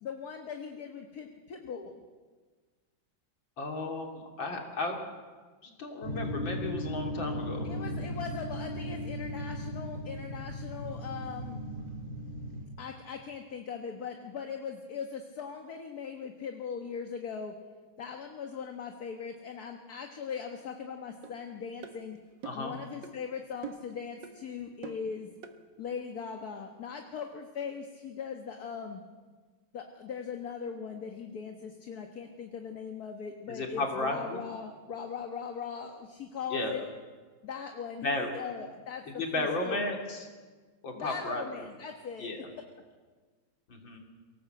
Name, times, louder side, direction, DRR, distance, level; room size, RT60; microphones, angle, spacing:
voice 1, 0.0-2.0 7.6-11.6 12.8-17.5 18.0-22.2 22.5-25.3 25.8-29.0 29.7-36.9 37.4-39.9 40.9-42.3, left 6 dB, 50° left, 4 dB, 1.7 m, -40 dB
voice 2, 3.6-5.0 5.6-7.7 22.4-22.7 33.5-34.4 36.5-36.8 38.0-38.3 39.2-40.2 40.8-41.7 42.2-42.5 43.7-44.0, left 2 dB, 70° left, 1 dB, 3.7 m, -34 dB
sound 1, 6.0-12.7, equal, 25° left, 4.7 m, -37 dB
sound 2, 21.2-21.4 21.8-22.0 22.4-22.7 23.0-23.2 23.6-23.9 24.2-24.4 24.8-25.1 25.4-25.6, right 6 dB, 65° right, 1.9 m, -43 dB
23.0 x 18.0 x 7.9 m, 1.4 s
omnidirectional pair, 2.2 m